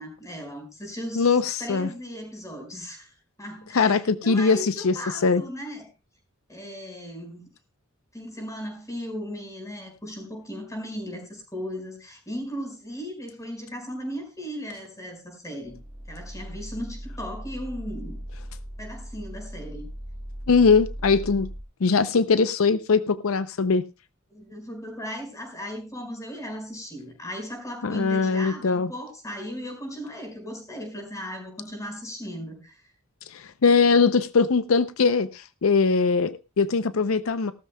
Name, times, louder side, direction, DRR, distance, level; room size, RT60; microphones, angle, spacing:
voice 1, 0.0-5.9 6.5-7.4 8.1-15.8 16.1-18.2 18.8-19.9 24.3-32.9, equal, 15° left, 4.9 m, -37 dB
voice 2, 1.2-1.9 3.7-5.0 5.2-5.4 20.5-21.5 21.8-23.8 27.8-28.9 33.3-37.5, left 4 dB, 85° left, 0.6 m, -21 dB
sound 1, 15.7-21.6, equal, 25° right, 1.3 m, -38 dB
18.0 x 13.0 x 2.3 m
head